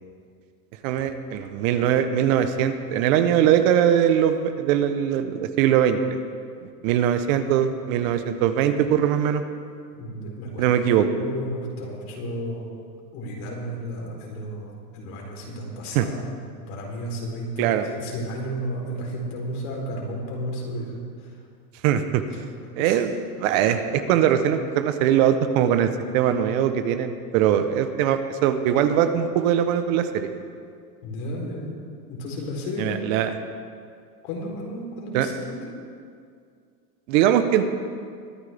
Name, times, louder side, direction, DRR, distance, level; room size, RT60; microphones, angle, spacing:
voice 1, 0.8-6.2 6.6-9.4 10.6-11.1 15.9-16.1 17.6-17.9 21.8-22.2 22.8-30.3 32.8-33.3 35.1-35.3 37.1-37.7, right 9 dB, 55° right, 9 dB, 1.1 m, -21 dB
voice 2, 9.9-10.6 11.1-12.7 13.1-16.4 16.7-17.7 18.0-21.0 22.8-22.9 31.0-31.7 32.1-33.0 34.2-35.7, equal, 60° left, -1 dB, 3.9 m, -33 dB
22.0 x 9.6 x 3.5 m, 2.2 s
supercardioid pair, 125°, 48 cm